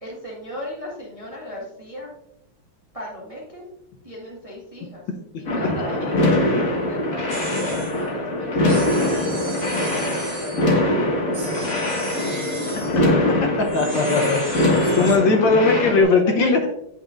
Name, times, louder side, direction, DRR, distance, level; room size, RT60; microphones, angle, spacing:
voice 1, 0.0-2.1 2.9-3.6 4.0-5.0 5.5-7.5 7.9-10.9 16.1-16.5, equal, 20° right, -4 dB, 1.3 m, -36 dB
sound 1, 5.5-16.0, left 1 dB, 45° left, 1.9 m, -22 dB
sound 2, 7.3-8.0 8.7-10.8 11.3-13.0 13.6-15.2, right 3 dB, 60° right, 2.4 m, -36 dB
voice 2, 13.7-14.7 14.9-16.7, left 4 dB, 75° left, 3 dB, 1.5 m, -19 dB
9.6 x 5.5 x 2.4 m, 0.80 s
omnidirectional pair, 2.2 m